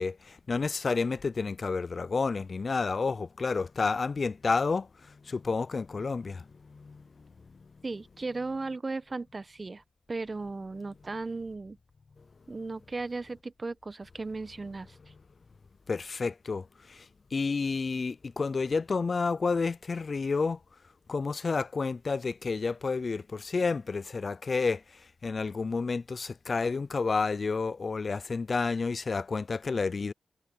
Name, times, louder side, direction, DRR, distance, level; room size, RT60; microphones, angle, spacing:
voice 1, 0.0-7.0 15.9-17.1 17.3-20.6 21.1-30.1, left 4 dB, 55° left, 0.5 m, -30 dB
voice 2, 7.8-9.8 10.1-11.8 12.5-15.0, right 3 dB, 40° right, 1.3 m, -36 dB
supercardioid pair, 40°, 0 cm